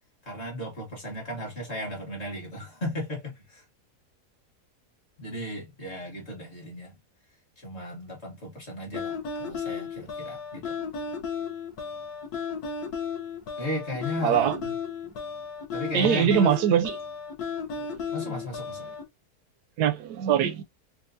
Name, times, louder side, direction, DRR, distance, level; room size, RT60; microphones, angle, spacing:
voice 1, 0.2-3.6 5.2-6.9 7.6-10.7 13.6-14.7 15.7-16.5 18.1-18.9, left 1 dB, 45° left, 1.6 m, -35 dB
sound 1, 8.9-19.0, left 5 dB, 75° left, 1.3 m, -34 dB
voice 2, 14.2-14.6 15.9-17.0 18.3-18.4 18.9-19.0 19.8-20.6, right 9 dB, 90° right, 1.2 m, -23 dB
4.3 x 2.3 x 2.6 m
omnidirectional pair, 1.7 m